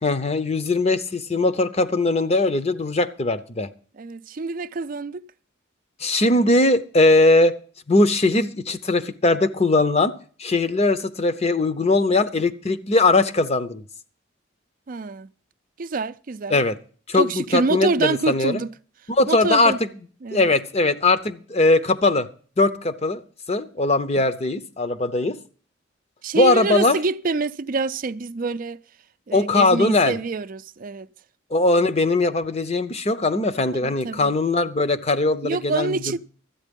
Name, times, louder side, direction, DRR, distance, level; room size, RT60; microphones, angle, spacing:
voice 1, 0.0-3.7 6.0-7.5 7.9-10.1 10.4-13.8 16.5-16.8 17.1-18.6 19.1-19.9 20.3-22.3 22.6-23.2 23.5-25.4 26.3-27.0 29.3-30.2 31.5-36.2, left 2 dB, 35° left, 0.7 m, -20 dB
voice 2, 4.0-5.2 14.9-15.3 15.8-16.6 17.2-18.7 19.3-19.8 20.2-20.5 26.2-28.8 29.3-31.1 33.8-34.3 35.4-36.2, right 4 dB, 45° right, 0.4 m, -26 dB
13.0 x 9.1 x 5.3 m
head